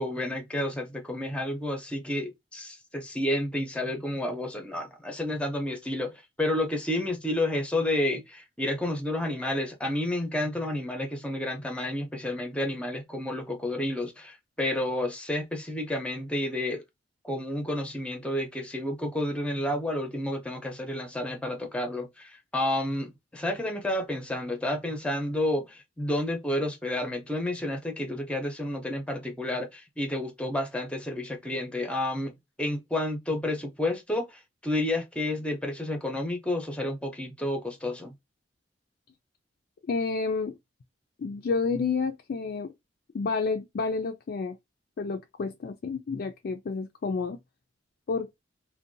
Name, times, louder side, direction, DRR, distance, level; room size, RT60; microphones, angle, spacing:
voice 1, 0.0-16.8 17.2-38.2, left 1 dB, 5° left, 0.6 m, -30 dB
voice 2, 39.9-40.5 41.2-42.7 43.1-44.6 45.0-47.4 48.1-48.3, left 4 dB, 55° left, 0.4 m, -30 dB
2.6 x 2.2 x 2.5 m
head